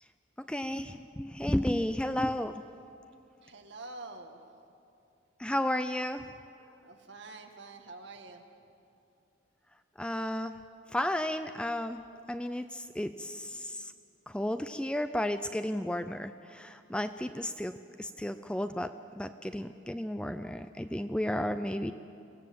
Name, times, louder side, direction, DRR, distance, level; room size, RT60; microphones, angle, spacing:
voice 1, 0.4-2.6 5.4-6.3 10.0-10.6 10.9-13.9 14.3-17.7 18.0-21.9, left 1 dB, 5° left, 10 dB, 0.4 m, -33 dB
voice 2, 3.4-4.5 6.8-8.4 21.4-21.9, right 3 dB, 60° right, 4 dB, 1.8 m, -47 dB
23.5 x 17.0 x 7.7 m, 2.5 s
head